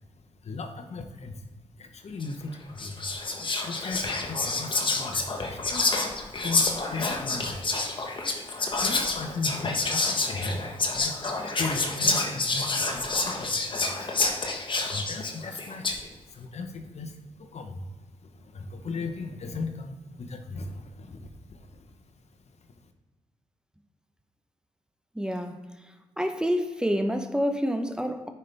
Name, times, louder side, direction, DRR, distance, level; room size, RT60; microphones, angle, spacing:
voice 1, 0.4-1.4 1.8-3.1 3.6-5.9 6.4-6.6 6.9-7.6 8.7-14.1 14.8-16.0 16.3-17.9 18.2-21.9, left 3 dB, 55° left, 0.9 m, -37 dB
Whispering, 2.2-2.4 2.8-16.1, left 3 dB, 40° left, 1.2 m, -28 dB
voice 2, 25.1-25.6 26.2-28.3, equal, 5° right, 0.8 m, -27 dB
9.5 x 5.5 x 3.4 m
cardioid pair, 65°, 13 cm